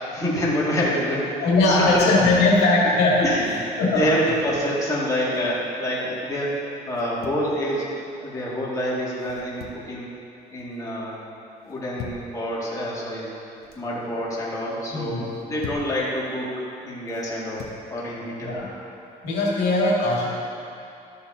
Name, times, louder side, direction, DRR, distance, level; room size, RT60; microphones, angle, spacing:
voice 1, 0.1-2.4 2.8-2.9 3.2-3.5 3.7-6.5 6.9-7.9 8.2-10.1 10.5-11.2 11.7-13.3 13.8-16.5 16.8-17.6 17.9-18.5, equal, 20° left, -7 dB, 2.0 m, -26 dB
voice 2, 1.4-4.0 14.9-15.3 18.4-18.7 19.2-20.3, left 2 dB, 80° left, -5 dB, 2.1 m, -20 dB
sound 1, 3.1-3.7 5.0-5.6 6.9-7.5 9.2-9.9 10.3-10.8 11.6-12.3 13.4-13.9 15.2-15.9 17.1-17.8, left 7 dB, 65° left, 0.8 m, -42 dB
13.0 x 6.6 x 2.7 m, 2.7 s
cardioid pair, 110°, 17 cm